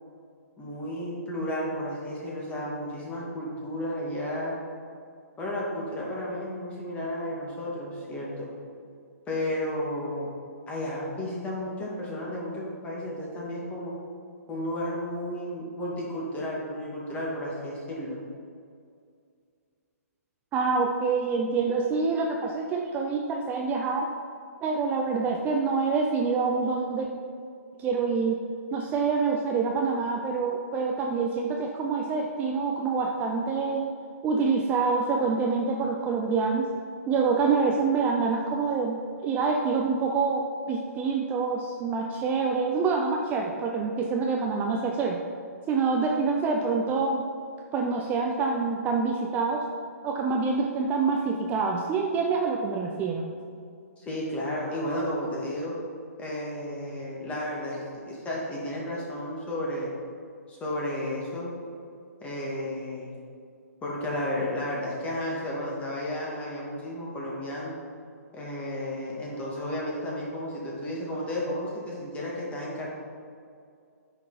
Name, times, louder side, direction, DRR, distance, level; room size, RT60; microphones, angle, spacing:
voice 1, 0.6-4.6 5.4-8.5 9.3-10.3 10.7-13.9 14.5-18.2 54.0-55.7 56.2-59.9 60.5-61.5 62.2-63.1 63.8-67.7 68.3-73.0, left 1 dB, 15° left, -4 dB, 2.1 m, -33 dB
voice 2, 20.5-24.1 24.6-27.1 27.8-28.4 28.7-33.9 34.2-36.7 37.1-45.2 45.7-47.2 47.7-49.6 50.0-53.3, right 4 dB, 20° right, 1 dB, 0.6 m, -26 dB
9.8 x 6.0 x 4.2 m, 2.3 s
figure-of-eight pair, 130°, 9 cm